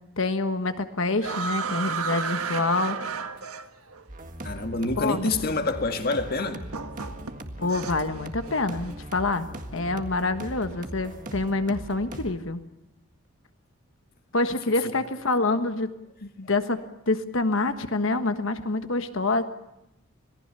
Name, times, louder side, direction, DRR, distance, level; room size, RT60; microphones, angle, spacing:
voice 1, 0.2-3.0 5.0-5.3 7.6-9.5 9.7-12.6 14.3-15.9 16.2-19.4, left 3 dB, 60° left, 1.4 m, -26 dB
sound 1, 1.2-4.0 5.1-5.2 6.4-8.2 8.5-8.9, right 5 dB, 85° right, 1.3 m, -32 dB
sound 2, 4.1-12.3, right 1 dB, 35° right, 1.8 m, -39 dB
voice 2, 4.4-6.6 7.0-7.1, left 3 dB, 45° left, 1.9 m, -27 dB
26.5 x 18.5 x 6.8 m
head